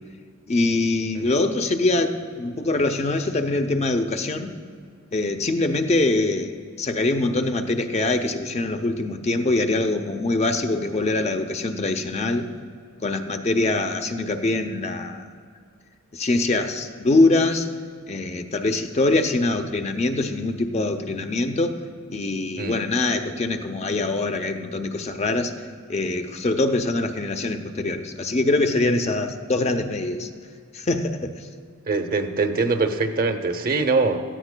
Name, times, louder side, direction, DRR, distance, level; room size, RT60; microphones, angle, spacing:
voice 1, 0.5-4.5 5.1-12.5 13.0-15.2 16.1-17.7 18.1-21.8 22.1-25.5 25.9-30.3 30.7-31.5, left 2 dB, 30° left, 6 dB, 0.5 m, -23 dB
voice 2, 31.9-34.2, right 3 dB, 45° right, 7 dB, 0.7 m, -23 dB
17.5 x 14.0 x 2.2 m, 2.1 s
head